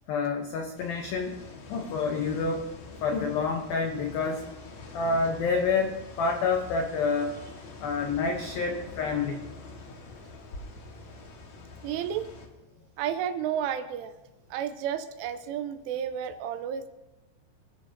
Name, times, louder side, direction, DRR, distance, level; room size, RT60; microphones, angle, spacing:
voice 1, 0.1-2.7 3.0-4.4 4.9-7.3 7.8-9.4, left 4 dB, 85° left, 3 dB, 2.0 m, -28 dB
sound 1, 0.8-12.5, left 3 dB, 55° left, 2.0 m, -45 dB
voice 2, 11.8-12.3 13.0-14.1 14.5-16.9, right 9 dB, 85° right, 10 dB, 3.1 m, -31 dB
25.0 x 14.0 x 2.8 m, 1.0 s
omnidirectional pair, 6.0 m